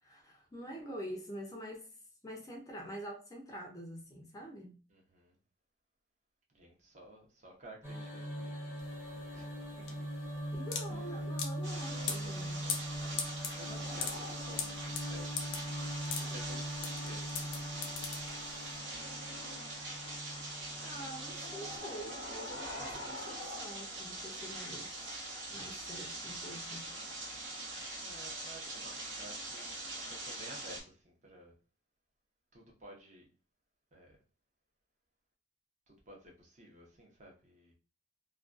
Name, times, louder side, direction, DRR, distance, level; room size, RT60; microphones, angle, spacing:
voice 1, 0.0-2.0 2.2-4.7 10.5-12.6 20.8-24.9 25.5-26.9, equal, 20° left, 0.4 m, -46 dB
voice 2, 4.9-5.4 6.5-9.9 10.9-11.5 11.8-17.5 17.7-18.1 22.5-23.2 26.9-27.3 28.0-29.7 30.1-31.5 32.5-33.3 33.9-34.2 35.9-37.7, right 1 dB, 40° right, 0.7 m, -54 dB
sound 1, 7.8-21.8, equal, 10° right, 0.9 m, -42 dB
sound 2, 8.8-18.7, left 6 dB, 75° left, 0.5 m, -41 dB
sound 3, 11.6-30.8, right 1 dB, 85° right, 1.0 m, -43 dB
2.4 x 2.2 x 2.4 m
head